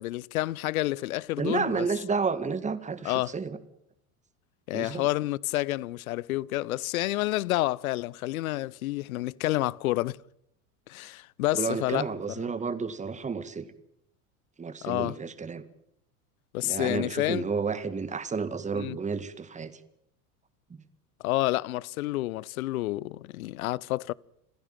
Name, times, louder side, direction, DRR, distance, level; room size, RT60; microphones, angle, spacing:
voice 1, 0.0-1.9 3.0-3.4 4.7-10.2 10.9-12.1 12.4-12.5 14.8-15.2 16.5-17.5 18.7-19.0 21.2-24.1, left 17 dB, 65° left, 0.8 m, -29 dB
voice 2, 1.4-3.6 4.7-5.1 11.5-13.6 14.6-15.6 16.6-19.7, right 5 dB, 15° right, 2.0 m, -31 dB
27.0 x 16.0 x 9.2 m
hypercardioid pair, 85°, 46 cm